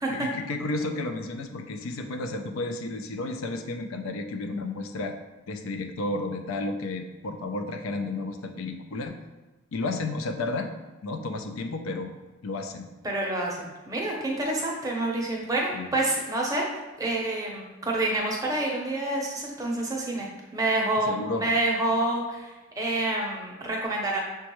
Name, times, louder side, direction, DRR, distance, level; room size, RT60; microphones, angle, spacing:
voice 1, 0.1-5.1 5.5-9.1 9.7-10.7 11.0-12.1 12.4-12.9 15.7-15.9 21.1-21.5, left 2 dB, 85° left, 5 dB, 0.4 m, -32 dB
voice 2, 13.0-16.7 17.0-24.2, right 2 dB, 15° right, -2 dB, 0.6 m, -28 dB
6.1 x 2.2 x 3.0 m, 1.1 s
head